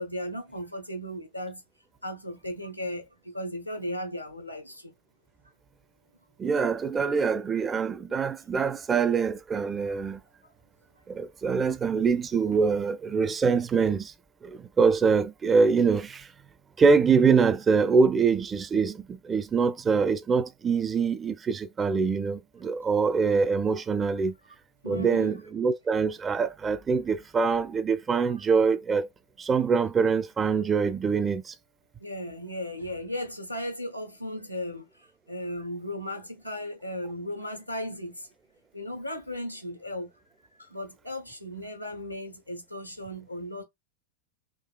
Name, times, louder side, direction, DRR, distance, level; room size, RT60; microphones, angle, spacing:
voice 1, 0.0-1.6 2.0-4.9 24.8-25.3 32.0-38.3 38.7-40.1 40.6-43.6, left 1 dB, 90° left, 0.7 m, -36 dB
voice 2, 6.4-10.2 11.1-14.1 14.4-16.3 16.8-24.4 24.8-29.1 29.4-31.5, right 5 dB, 20° right, 0.4 m, -24 dB
3.8 x 2.7 x 2.2 m
figure-of-eight pair, 90°, 0 cm